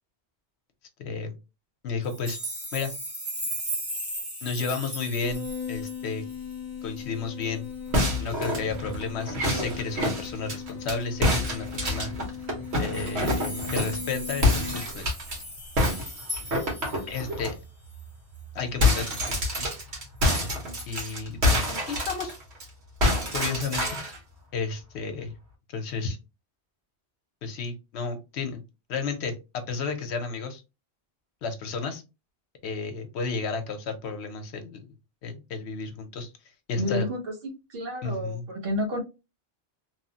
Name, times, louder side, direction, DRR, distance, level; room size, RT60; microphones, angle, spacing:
voice 1, 1.0-1.4 1.8-2.4 2.7-2.9 4.4-6.2 6.8-7.7 8.2-12.1 12.8-15.1 17.1-17.6 18.5-19.7 20.3-20.6 20.9-22.3 23.3-24.0 24.5-25.3 25.7-26.2 27.4-28.6 28.9-30.6 31.4-32.0 32.6-34.9 35.2-36.3 36.7-37.1 38.0-38.5, left 4 dB, 85° left, 0.9 m, -32 dB
sound 1, 2.0-6.6 7.0-7.1 7.4-7.5 7.9-8.3 9.4-9.6 11.3-11.4 11.7-11.8 12.6-17.5 18.0-18.1, equal, 25° right, 1.1 m, -37 dB
sound 2, 5.2-15.7, left 6 dB, 20° left, 0.5 m, -38 dB
sound 3, 7.9-11.0 11.2-14.0 14.4-15.4 15.8-17.5 17.9-18.1 18.4-22.6 23.0-24.2, left 1 dB, 85° right, 1.3 m, -27 dB
voice 2, 36.8-37.2 37.7-39.0, left 1 dB, 65° right, 1.1 m, -30 dB
2.9 x 2.1 x 2.7 m
omnidirectional pair, 1.1 m